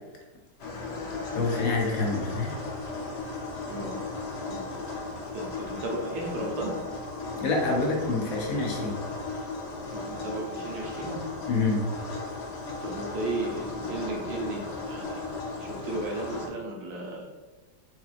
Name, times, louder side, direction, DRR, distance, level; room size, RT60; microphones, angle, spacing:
sound 1, 0.6-16.5, left 3 dB, 90° left, 0.5 m, -36 dB
voice 1, 1.3-2.5 7.3-9.0 11.5-11.8, left 3 dB, 65° left, -1 dB, 1.0 m, -27 dB
voice 2, 5.3-6.8 9.9-11.2 12.8-15.2 15.6-17.3, right 2 dB, 90° right, -1 dB, 1.5 m, -34 dB
4.1 x 3.0 x 2.4 m, 1.2 s
omnidirectional pair, 1.9 m